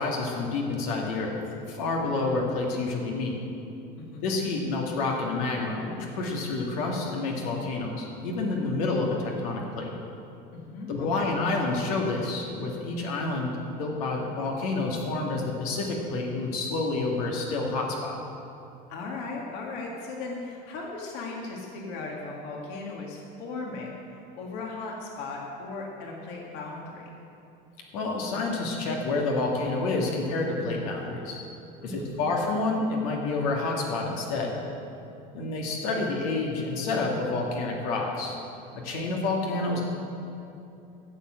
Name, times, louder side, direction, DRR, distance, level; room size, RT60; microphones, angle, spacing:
voice 1, 0.0-1.4 1.7-3.4 4.2-9.9 10.9-18.2 27.9-31.4 31.8-34.6 35.3-38.4 38.7-40.1, left 3 dB, 85° left, -1 dB, 2.3 m, -29 dB
voice 2, 10.5-11.3 18.9-24.0 24.3-27.1 31.8-32.3, left 3 dB, 65° left, -1 dB, 2.1 m, -37 dB
14.5 x 7.5 x 7.7 m, 2.7 s
cardioid pair, 150°, 18 cm